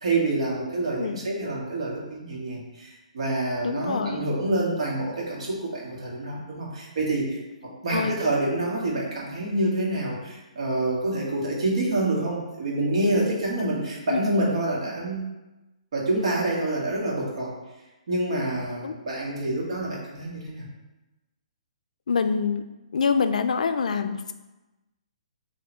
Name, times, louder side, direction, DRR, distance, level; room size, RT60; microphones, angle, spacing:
voice 1, 0.0-15.2 15.9-17.5 18.1-20.7, right 2 dB, 55° right, -3 dB, 1.4 m, -27 dB
voice 2, 3.6-4.2 7.9-8.2 14.1-14.2 18.8-18.9 22.1-22.6 22.9-24.3, left 5 dB, 75° left, 9 dB, 0.4 m, -25 dB
4.1 x 2.7 x 4.4 m, 1.1 s
hypercardioid pair, 175°, 4 cm